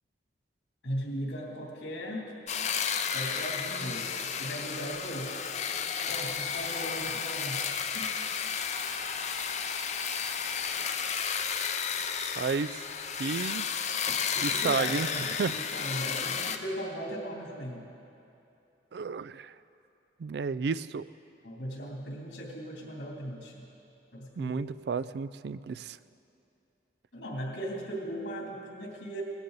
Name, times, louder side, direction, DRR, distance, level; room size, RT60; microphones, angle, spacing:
voice 1, 0.8-2.3 3.1-5.4 6.1-8.1 14.3-17.8 21.4-23.7 24.1-24.7 27.1-29.2, equal, 90° left, -2 dB, 3.0 m, -38 dB
sound 1, 2.5-16.6, left 6 dB, 40° left, 0.6 m, -32 dB
voice 2, 12.4-12.8 13.2-13.7 14.4-15.1 15.4-15.5 18.9-19.5 20.2-21.1 24.4-26.0, right 5 dB, 65° right, 16 dB, 0.3 m, -32 dB
19.0 x 14.0 x 4.0 m, 2.7 s
head